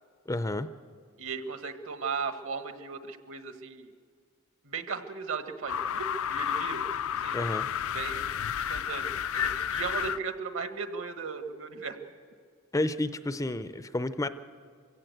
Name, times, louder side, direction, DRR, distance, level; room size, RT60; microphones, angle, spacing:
voice 1, 0.3-0.7 7.3-7.7 12.7-14.3, left 2 dB, 15° left, 12 dB, 0.5 m, -30 dB
voice 2, 1.2-3.9 4.6-6.8 7.1-7.4 7.9-12.1, right 5 dB, 65° right, 8 dB, 1.5 m, -37 dB
sound 1, 5.7-10.2, left 8 dB, 65° left, 0.5 m, -31 dB
24.0 x 16.5 x 8.0 m, 2.2 s
head